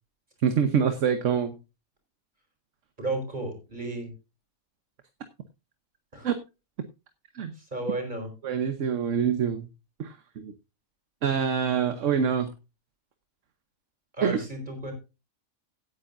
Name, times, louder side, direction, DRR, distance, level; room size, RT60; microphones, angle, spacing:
voice 1, 0.4-1.6 6.2-6.3 7.3-7.5 8.4-9.7 10.0-10.5 11.2-12.5 14.2-14.4, right 7 dB, 65° right, 9 dB, 1.3 m, -25 dB
voice 2, 3.0-4.1 6.1-6.3 7.5-8.3 14.1-14.9, right 2 dB, 35° right, 4 dB, 4.5 m, -33 dB
17.0 x 9.4 x 2.6 m, 0.28 s
omnidirectional pair, 1.4 m